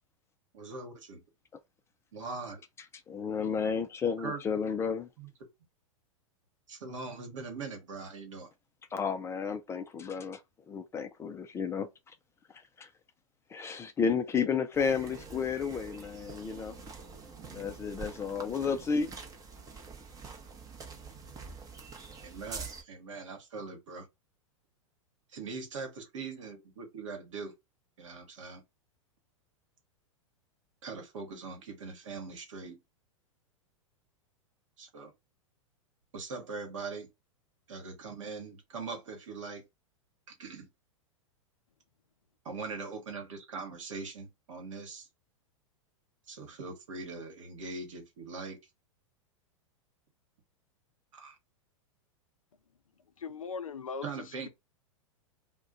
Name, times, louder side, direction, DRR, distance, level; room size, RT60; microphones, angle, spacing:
voice 1, 0.5-1.2 2.1-2.6 4.2-4.4 5.2-5.3 6.7-8.5 22.2-24.1 25.3-27.5 28.0-28.6 30.8-32.8 34.8-35.1 36.1-37.1 37.7-39.6 40.3-40.7 42.4-45.1 46.3-48.6 51.1-51.3 54.0-54.5, right 4 dB, 65° right, 1.1 m, -41 dB
voice 2, 3.1-5.1 8.9-10.4 10.7-11.9 12.8-12.9 13.5-16.8 17.5-19.1, left 6 dB, 15° left, 0.3 m, -32 dB
sound 1, 14.7-22.8, right 5 dB, 20° right, 0.7 m, -46 dB
voice 3, 16.1-18.1 19.5-19.7 53.2-54.5, left 5 dB, 85° left, 0.4 m, -44 dB
2.3 x 2.1 x 3.8 m
figure-of-eight pair, 100°, 17 cm